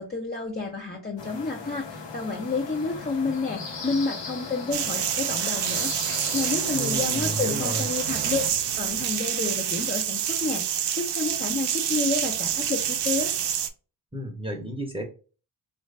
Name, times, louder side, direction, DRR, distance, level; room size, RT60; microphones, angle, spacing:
voice 1, 0.0-8.4 8.8-13.4, left 3 dB, 20° left, -1 dB, 0.6 m, -30 dB
sound 1, 1.2-8.5, left 4 dB, 75° left, 1.1 m, -37 dB
sound 2, 4.7-13.7, right 9 dB, 65° right, 0.6 m, -27 dB
voice 2, 6.7-7.9 14.1-15.0, equal, 15° right, 2 dB, 0.9 m, -32 dB
3.1 x 2.6 x 3.3 m, 0.36 s
cardioid pair, 65°, 44 cm